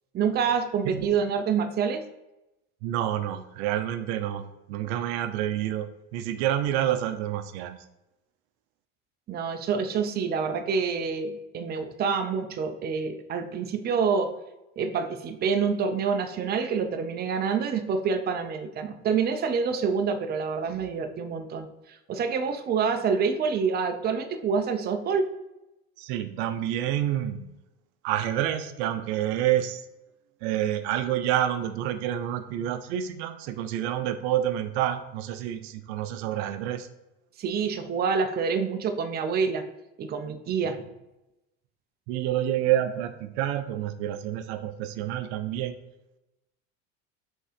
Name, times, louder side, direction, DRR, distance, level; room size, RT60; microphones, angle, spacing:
voice 1, 0.1-2.0 9.3-14.3 14.8-25.3 37.4-39.6 40.0-40.8, right 6 dB, 30° right, 7 dB, 0.6 m, -27 dB
voice 2, 2.8-4.4 4.7-7.8 26.0-27.6 28.0-29.8 30.4-36.9 42.1-45.8, right 11 dB, 70° right, 10 dB, 0.6 m, -28 dB
5.4 x 3.7 x 5.0 m, 0.94 s
supercardioid pair, 105°, 34 cm